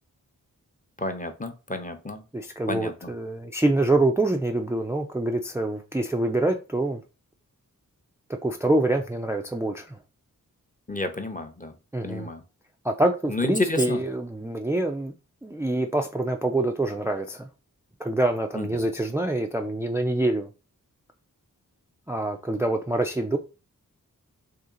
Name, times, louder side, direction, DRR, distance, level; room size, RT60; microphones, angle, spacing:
voice 1, 1.0-2.2 2.7-3.1 10.9-11.7 12.0-12.4 13.3-14.0 18.5-18.8, left 2 dB, 25° left, 0.7 m, -30 dB
voice 2, 2.3-7.0 8.3-10.0 11.9-12.3 12.8-15.1 15.4-17.5 18.0-20.5 22.1-23.4, right 2 dB, 10° right, 0.4 m, -25 dB
3.0 x 2.9 x 3.8 m
cardioid pair, 45°, 35 cm